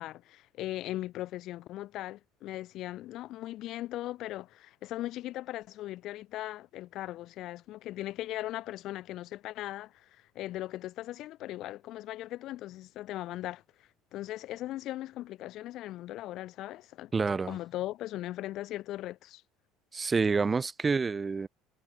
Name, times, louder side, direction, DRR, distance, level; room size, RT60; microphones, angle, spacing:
voice 1, 0.0-13.6 14.1-17.1 17.5-19.4, left 15 dB, 65° left, 1.7 m, -39 dB
voice 2, 17.1-17.6 19.9-21.5, right 4 dB, 25° right, 0.8 m, -28 dB
supercardioid pair, 80°, 0 cm